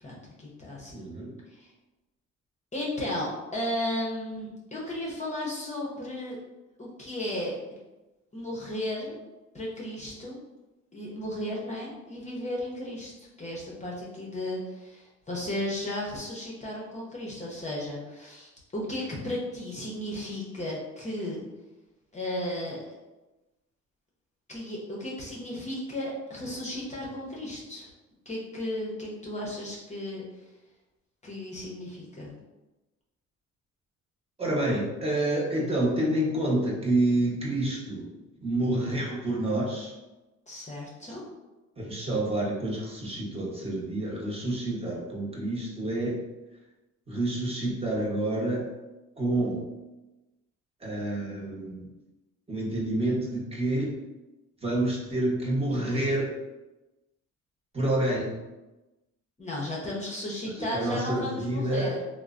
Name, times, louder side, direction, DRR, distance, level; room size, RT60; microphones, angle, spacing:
voice 1, 0.0-0.9 1.5-1.7 2.7-6.4 6.8-7.5 8.3-9.2 9.5-10.4 10.9-13.1 13.4-21.4 22.1-22.9 24.5-27.9 28.3-30.5 31.2-32.4 40.5-41.2 59.4-62.0, left 1 dB, 25° left, -4 dB, 0.7 m, -34 dB
voice 2, 0.9-1.4 34.4-38.1 38.4-39.9 41.8-46.2 47.1-48.7 49.2-49.7 50.8-51.8 52.5-53.9 54.6-56.3 57.7-58.4 60.5-61.9, right 1 dB, 20° right, -4 dB, 0.9 m, -28 dB
3.0 x 2.0 x 2.4 m, 1.1 s
cardioid pair, 90°, 30 cm